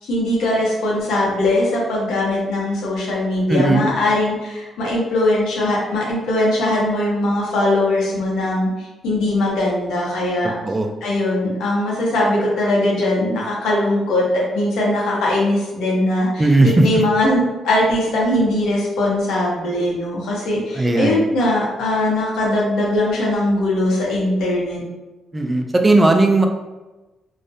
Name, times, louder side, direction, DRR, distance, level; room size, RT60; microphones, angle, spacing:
voice 1, 0.0-10.5 11.0-24.8, left 1 dB, 85° left, -4 dB, 0.8 m, -20 dB
voice 2, 3.5-3.9 10.6-10.9 16.4-16.8 20.7-21.3 25.3-26.5, right 2 dB, 20° right, 4 dB, 0.3 m, -16 dB
2.3 x 2.0 x 2.6 m, 1.1 s
cardioid pair, 90°, 0 cm